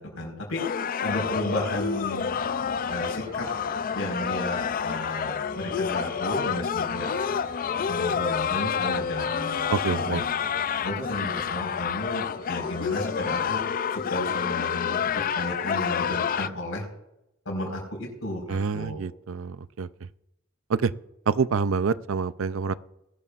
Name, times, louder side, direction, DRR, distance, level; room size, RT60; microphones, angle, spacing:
voice 1, 0.1-0.7 1.0-2.4 2.9-3.5 3.9-7.1 7.8-10.2 10.7-13.6 13.9-16.8 17.4-19.0, left 1 dB, 80° left, 0 dB, 4.8 m, -33 dB
sound 1, 0.6-16.5, left 7 dB, 45° left, 0.4 m, -28 dB
sound 2, 1.1-13.7, right 2 dB, 40° right, 3.7 m, -45 dB
voice 2, 9.7-10.2 18.5-19.9 20.7-20.9 21.3-22.7, right 5 dB, 75° right, 15 dB, 0.5 m, -26 dB
20.0 x 12.5 x 2.5 m, 0.85 s
head